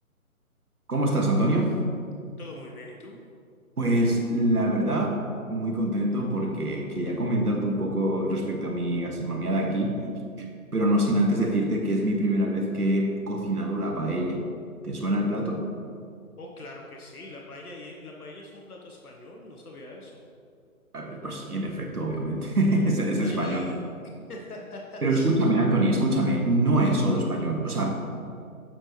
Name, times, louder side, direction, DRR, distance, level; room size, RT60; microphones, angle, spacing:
voice 1, 0.9-1.8 3.8-5.2 5.5-10.0 10.7-14.4 14.8-15.7 20.9-23.6 25.0-27.9, right 1 dB, 85° right, 2 dB, 1.6 m, -25 dB
voice 2, 2.4-3.2 16.4-20.2 23.2-23.8 24.0-25.3, left 2 dB, 80° left, 0 dB, 1.3 m, -42 dB
9.0 x 7.9 x 3.1 m, 2.3 s
figure-of-eight pair, 145°, 44 cm